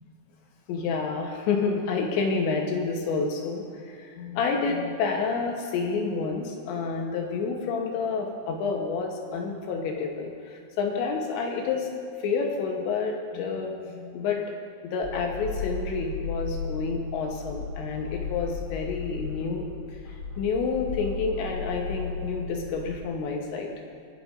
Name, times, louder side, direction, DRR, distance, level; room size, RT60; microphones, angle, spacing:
voice 1, 0.7-14.4 14.8-19.6 20.4-23.7, left 4 dB, 75° left, 1 dB, 3.0 m, -29 dB
sound 1, 15.0-22.9, left 4 dB, 30° left, 1.9 m, -35 dB
29.0 x 10.0 x 2.6 m, 2.4 s
omnidirectional pair, 5.7 m